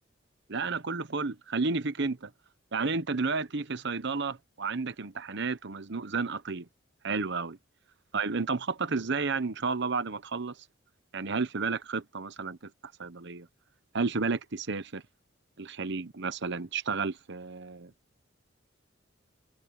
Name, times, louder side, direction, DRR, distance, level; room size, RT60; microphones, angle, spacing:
voice 1, 0.5-2.3 2.7-6.7 7.0-7.6 8.1-10.6 11.1-12.7 13.0-13.5 13.9-15.0 15.6-17.9, right 4 dB, 65° right, 1.0 m, -32 dB
open air
head